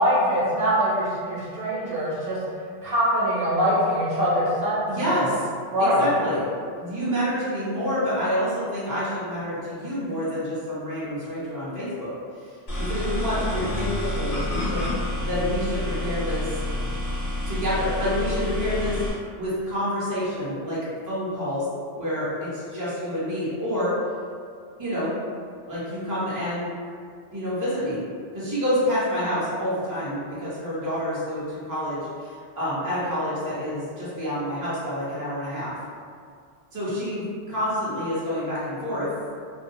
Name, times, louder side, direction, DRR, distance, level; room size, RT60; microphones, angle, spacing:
voice 1, 0.0-2.4 2.8-4.9 5.2-5.3 5.7-6.1, equal, 55° right, -9 dB, 0.9 m, -23 dB
voice 2, 4.9-5.4 5.8-6.5 6.8-12.1 12.8-14.8 15.2-16.5 17.5-19.0 19.4-20.8 21.1-21.7 22.0-23.9 24.8-25.1 25.7-26.7 27.3-28.0 28.3-35.7 36.7-39.1, equal, 20° right, -10 dB, 0.6 m, -28 dB
sound 1, 12.7-19.1, left 1 dB, 50° left, 1.0 m, -28 dB
2.6 x 2.2 x 2.6 m, 2.2 s
omnidirectional pair, 1.2 m